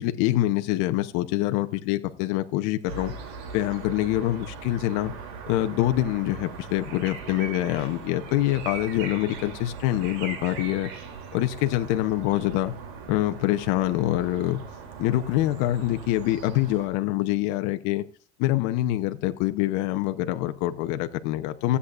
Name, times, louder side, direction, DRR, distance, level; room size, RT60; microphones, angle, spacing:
voice 1, 0.0-3.1 3.5-5.1 5.5-10.9 11.3-12.7 13.1-14.6 15.0-18.0 18.4-21.8, left 15 dB, 60° left, 0.8 m, -25 dB
sound 1, 2.9-16.9, right 5 dB, 70° right, 2.9 m, -39 dB
15.5 x 8.4 x 2.4 m
supercardioid pair, 105°, 33 cm